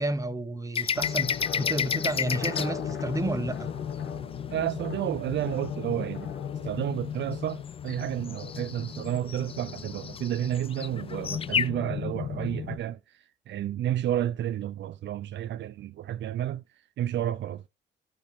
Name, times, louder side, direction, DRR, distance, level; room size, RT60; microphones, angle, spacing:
voice 1, 0.0-3.7, right 1 dB, 15° right, 1.0 m, -31 dB
sound 1, 0.8-2.7 7.7-11.7, left 7 dB, 30° left, 0.4 m, -31 dB
sound 2, 0.9-12.8, left 8 dB, 65° left, 2.1 m, -36 dB
voice 2, 4.5-6.3 6.6-13.0 13.5-16.6 17.0-17.6, right 11 dB, 65° right, 0.5 m, -31 dB
11.5 x 5.3 x 3.6 m
cardioid pair, 90°, 20 cm